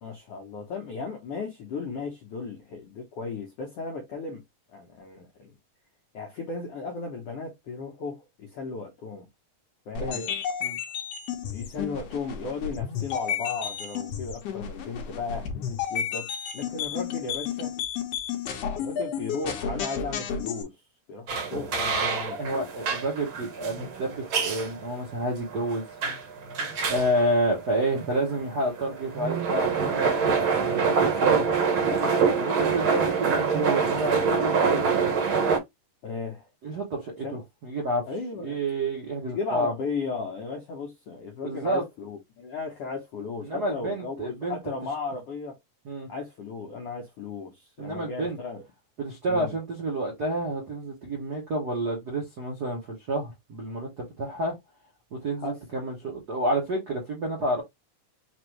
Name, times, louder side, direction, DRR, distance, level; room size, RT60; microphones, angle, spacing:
voice 1, 0.0-4.4 4.7-5.5 6.1-9.3 9.9-10.2 11.5-17.7 18.8-20.8 21.1-22.7 36.0-36.5 37.2-37.4 38.1-38.6 39.2-45.6 46.1-48.6 49.3-49.5 55.4-55.9, left 4 dB, 85° left, 1.3 m, -35 dB
sound 1, 9.9-20.6, left 7 dB, 70° left, 1.5 m, -32 dB
sound 2, 21.3-35.6, right 5 dB, 60° right, 1.3 m, -26 dB
voice 2, 22.4-25.8 26.9-30.1 30.6-31.5 32.3-35.1 36.6-38.0 38.4-39.7 41.4-41.8 43.4-44.6 45.8-46.1 47.8-48.4 49.0-54.6 55.1-57.6, right 1 dB, 80° right, 0.8 m, -29 dB
5.3 x 2.6 x 3.0 m
omnidirectional pair, 3.8 m